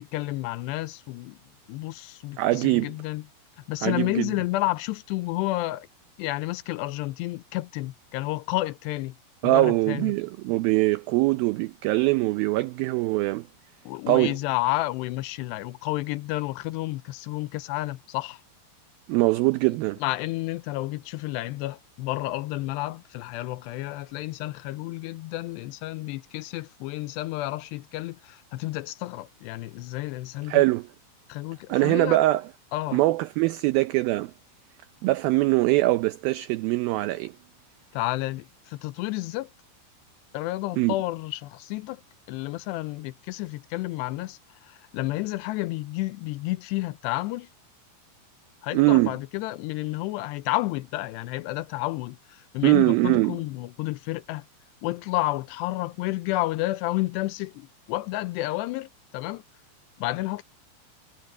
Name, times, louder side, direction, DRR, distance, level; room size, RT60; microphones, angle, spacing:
voice 1, 0.0-1.4 1.7-3.3 3.6-5.9 6.2-9.2 9.4-10.1 13.8-18.4 20.0-30.6 31.3-32.2 32.7-33.0 37.9-39.5 40.3-42.0 42.3-47.5 48.6-54.5 54.8-59.4 60.0-60.4, left 18 dB, 85° left, 2.8 m, -31 dB
voice 2, 2.4-2.9 3.8-4.3 9.4-13.5 14.1-14.3 19.1-20.0 30.5-30.9 31.7-32.5 32.9-34.3 35.0-37.3 40.8-40.9 48.7-49.1 52.6-53.4, right 19 dB, 85° right, 2.1 m, -22 dB
omnidirectional pair, 4.9 m